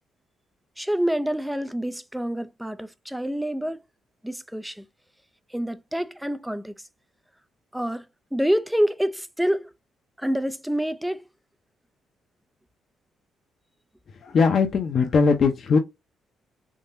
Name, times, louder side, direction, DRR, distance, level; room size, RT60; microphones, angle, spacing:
voice 1, 0.8-3.8 4.2-4.9 5.5-6.7 7.7-8.1 8.3-9.7 10.2-11.2, equal, 5° right, 0.4 m, -27 dB
voice 2, 14.2-15.8, left 5 dB, 50° left, 0.7 m, -20 dB
3.7 x 2.8 x 2.6 m
cardioid pair, 90°, 0 cm